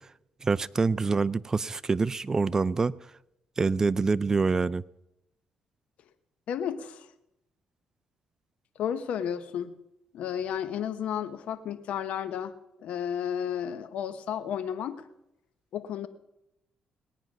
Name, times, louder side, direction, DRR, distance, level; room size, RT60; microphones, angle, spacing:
voice 1, 0.4-2.9 3.6-4.8, right 4 dB, 25° right, 16 dB, 0.4 m, -26 dB
voice 2, 6.5-7.1 8.8-9.8 10.1-12.5 12.8-15.0 15.7-16.1, left 9 dB, 70° left, 11 dB, 0.9 m, -32 dB
19.0 x 9.3 x 6.0 m, 0.86 s
cardioid pair, 95°, 2 cm